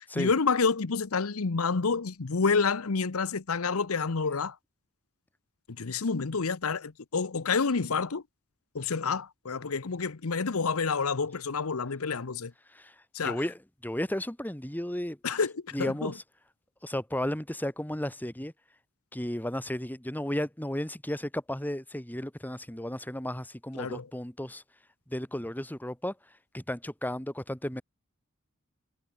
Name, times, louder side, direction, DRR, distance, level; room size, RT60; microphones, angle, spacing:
voice 1, 0.1-4.5 5.8-8.2 8.7-12.5 13.1-13.4 15.2-15.5 15.8-16.1 23.8-24.0, left 5 dB, 80° left, 0.9 m, -28 dB
voice 2, 13.2-15.2 15.7-16.2 16.8-18.5 19.1-24.6 25.1-26.2 26.5-27.8, left 1 dB, 10° left, 1.9 m, -34 dB
head